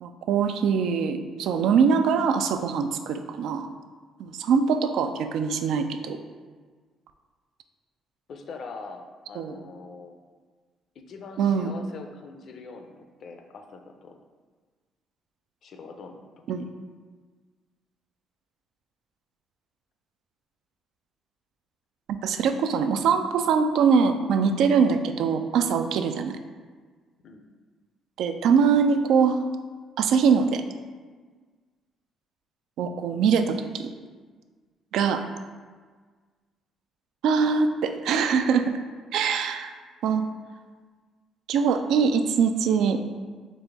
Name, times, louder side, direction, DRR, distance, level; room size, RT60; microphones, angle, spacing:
voice 1, 0.0-3.7 4.2-6.2 9.4-9.5 11.4-11.7 16.5-16.7 22.2-26.3 28.2-29.4 30.0-30.6 32.8-33.9 34.9-35.2 37.2-38.8 39.1-39.7 40.0-40.2 41.5-43.0, right 6 dB, 75° right, 7 dB, 0.3 m, -23 dB
voice 2, 8.3-10.2 11.1-14.2 15.6-16.3 16.5-16.7 27.2-27.5, left 4 dB, 60° left, 5 dB, 0.5 m, -43 dB
4.1 x 3.0 x 3.5 m, 1.5 s
supercardioid pair, 70°, 0 cm